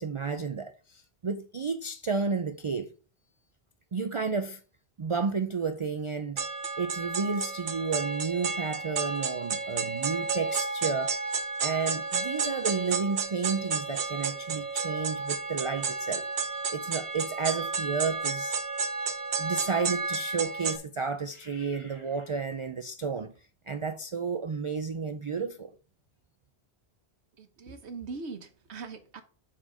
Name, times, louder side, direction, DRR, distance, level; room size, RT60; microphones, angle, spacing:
voice 1, 0.0-2.9 3.9-4.6 5.0-6.4 6.8-11.1 11.6-18.6 19.4-23.3 23.7-25.7, right 5 dB, 45° right, 0.4 m, -32 dB
sound 1, 6.4-20.8, right 4 dB, 60° right, 1.1 m, -32 dB
voice 2, 27.4-29.2, right 4 dB, 85° right, 1.3 m, -41 dB
7.5 x 4.3 x 4.9 m
omnidirectional pair, 1.1 m